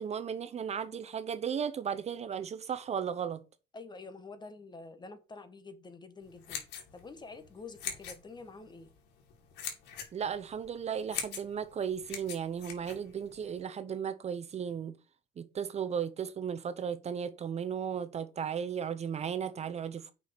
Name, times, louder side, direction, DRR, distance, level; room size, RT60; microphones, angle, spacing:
voice 1, 0.0-3.4 10.1-14.9 15.4-20.1, right 7 dB, 40° right, 0.8 m, -35 dB
voice 2, 3.7-6.6 6.9-8.9, left 3 dB, 25° left, 1.4 m, -48 dB
sound 1, 6.2-13.6, left 8 dB, 90° left, 2.4 m, -43 dB
6.0 x 5.5 x 6.6 m
cardioid pair, 110°, 17 cm